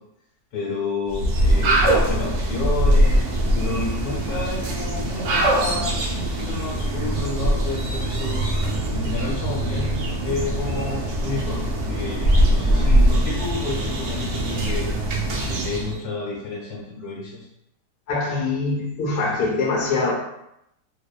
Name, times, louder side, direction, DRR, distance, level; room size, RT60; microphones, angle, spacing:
voice 1, 0.5-14.9 15.4-17.5, left 3 dB, 85° left, 1.3 m, -30 dB
sound 1, 1.1-16.0, right 1 dB, 85° right, 0.6 m, -22 dB
voice 2, 18.1-20.1, left 3 dB, 70° left, 0.9 m, -23 dB
2.9 x 2.1 x 2.2 m
omnidirectional pair, 1.8 m